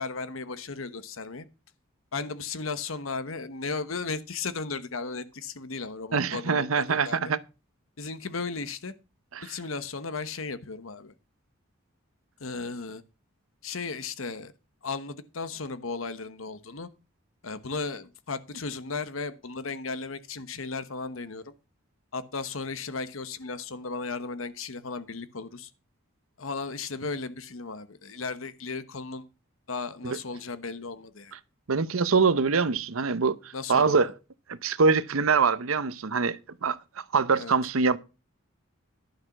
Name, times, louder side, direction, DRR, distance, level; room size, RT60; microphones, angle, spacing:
voice 1, 0.0-1.5 2.1-7.2 8.0-8.9 9.4-11.1 12.4-13.0 13.6-14.5 14.8-16.9 17.4-21.5 22.1-25.7 26.4-29.2 29.7-31.3 33.5-34.1 37.4-37.5, left 4 dB, 75° left, 1.1 m, -35 dB
voice 2, 6.1-7.4 9.3-9.4 30.0-30.2 31.7-33.4 33.7-34.1 34.5-36.8 37.1-38.0, right 5 dB, 85° right, 0.8 m, -24 dB
11.5 x 6.5 x 5.9 m
head